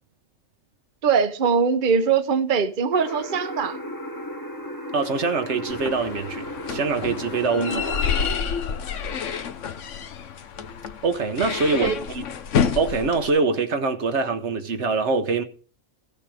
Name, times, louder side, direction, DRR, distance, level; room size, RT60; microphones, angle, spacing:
voice 1, 1.0-3.8 7.5-7.8 11.8-12.0, right 6 dB, 45° right, 1.0 m, -22 dB
sound 1, 2.9-8.3, left 1 dB, 15° left, 1.4 m, -34 dB
voice 2, 4.9-8.0 11.0-12.3 12.7-15.4, right 4 dB, 65° right, 1.2 m, -24 dB
sound 2, 5.7-13.3, left 7 dB, 70° left, 1.2 m, -29 dB
15.5 x 6.9 x 4.9 m
omnidirectional pair, 1.3 m